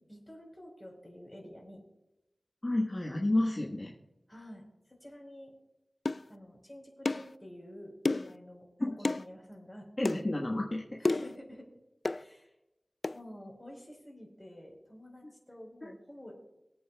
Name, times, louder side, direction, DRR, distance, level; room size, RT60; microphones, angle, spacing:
voice 1, 0.1-1.8 4.3-5.5 6.3-8.7 9.0-10.2 11.0-11.7 12.1-12.5 13.1-16.4, equal, 15° left, -1 dB, 4.4 m, -49 dB
voice 2, 2.6-3.9 8.8-8.9 10.0-11.0 15.8-15.9, left 1 dB, 35° left, -2 dB, 1.4 m, -30 dB
sound 1, 6.1-6.2 7.1-7.3 8.1-8.4 9.0-9.3 10.1-10.2 11.1-11.4 12.1-12.2 13.0-13.2, left 3 dB, 55° left, 0.3 m, -30 dB
23.5 x 8.6 x 2.3 m, 0.94 s
wide cardioid pair, 65°, 0 cm